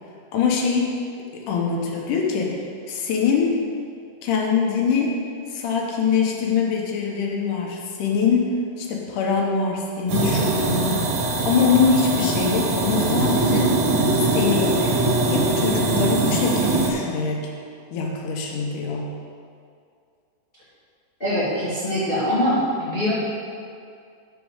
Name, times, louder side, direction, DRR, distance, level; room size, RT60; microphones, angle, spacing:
voice 1, 0.3-1.0 1.3-2.6 2.9-3.6 4.2-5.2 5.5-11.1 11.5-13.7 14.3-15.0 15.3-17.5 17.9-19.1, left 6 dB, 70° left, -1 dB, 2.4 m, -23 dB
sound 1, 10.1-16.9, right 2 dB, 65° right, 2.3 m, -21 dB
voice 2, 21.2-23.1, equal, 20° left, -11 dB, 1.9 m, -23 dB
6.6 x 6.4 x 6.5 m, 2.3 s
omnidirectional pair, 4.0 m